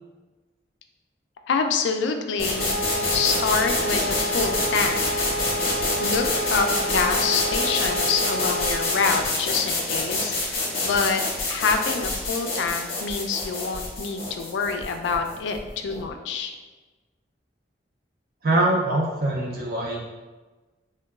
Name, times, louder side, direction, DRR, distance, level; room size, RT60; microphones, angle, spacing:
voice 1, 1.5-2.7 3.0-5.6 6.0-6.2 6.5-10.3 10.8-11.2 11.5-16.5, left 5 dB, 75° left, 5 dB, 0.3 m, -26 dB
sound 1, 2.4-16.1, left 2 dB, 50° left, 0.7 m, -27 dB
Wind instrument woodwind instrument, 2.5-9.1, equal, 70° right, 1.0 m, -29 dB
voice 2, 18.4-20.1, right 2 dB, 50° right, -3 dB, 0.4 m, -23 dB
3.7 x 2.2 x 2.3 m, 1.2 s
head